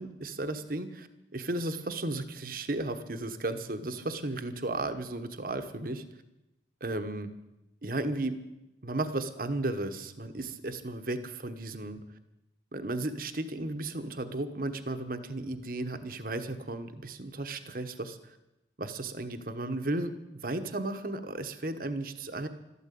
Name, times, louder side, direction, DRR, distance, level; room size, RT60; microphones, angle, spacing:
voice 1, 0.0-6.0 6.8-7.3 7.8-8.4 8.8-12.0 12.7-18.3 18.8-22.5, right 2 dB, 50° right, 8 dB, 1.1 m, -34 dB
13.5 x 12.5 x 8.4 m, 0.93 s
head